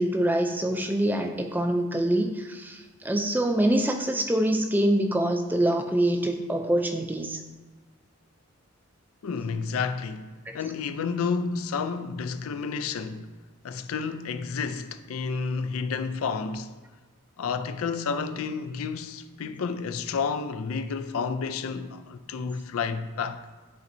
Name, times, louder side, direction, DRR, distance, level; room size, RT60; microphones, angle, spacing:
voice 1, 0.0-7.4 10.5-10.6, right 1 dB, 10° right, 0.3 m, -25 dB
voice 2, 9.2-13.3 13.6-16.7 17.4-23.4, left 5 dB, 80° left, 0.4 m, -30 dB
11.0 x 4.2 x 2.6 m
head